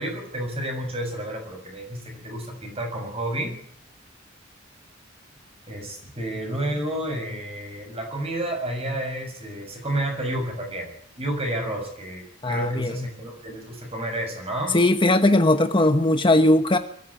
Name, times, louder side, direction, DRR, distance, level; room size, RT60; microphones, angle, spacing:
voice 1, 0.0-3.6 5.7-10.9 11.2-14.8, right 1 dB, 30° right, 4 dB, 6.9 m, -30 dB
voice 2, 12.4-12.9 14.7-16.8, left 1 dB, 25° left, 7 dB, 1.1 m, -19 dB
22.5 x 15.0 x 9.9 m, 0.66 s
head